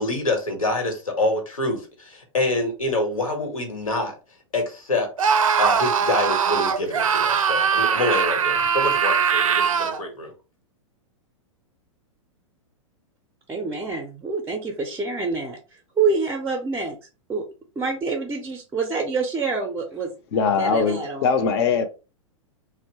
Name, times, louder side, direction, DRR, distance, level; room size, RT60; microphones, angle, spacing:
voice 1, 0.0-4.1 4.5-5.1 5.6-10.3, left 2 dB, 80° left, 1.0 m, -26 dB
Screaming, 5.2-10.0, right 7 dB, 80° right, 0.4 m, -21 dB
voice 2, 13.5-17.0 17.3-17.4 17.8-20.1 20.6-21.3, right 4 dB, 15° right, 0.5 m, -26 dB
voice 3, 20.3-21.9, left 5 dB, 50° left, 0.6 m, -21 dB
2.8 x 2.1 x 2.7 m
figure-of-eight pair, 105°, 17 cm